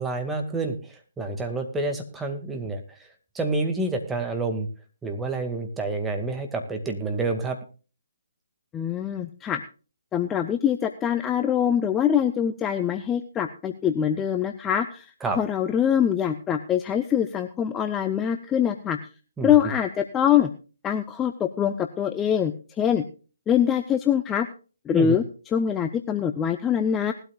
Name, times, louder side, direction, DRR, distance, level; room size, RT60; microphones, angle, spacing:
voice 1, 0.0-2.8 3.3-4.7 5.0-7.6 15.2-15.4 19.4-19.7 24.9-25.2, right 3 dB, 10° right, 4 dB, 2.1 m, -28 dB
voice 2, 8.7-9.6 10.1-15.1 15.4-19.0 19.4-20.5 20.8-23.0 23.5-24.5 24.9-25.2 25.5-27.1, left 9 dB, 15° left, 7 dB, 0.8 m, -24 dB
19.5 x 12.5 x 2.4 m, 0.36 s
figure-of-eight pair, 140°, 0 cm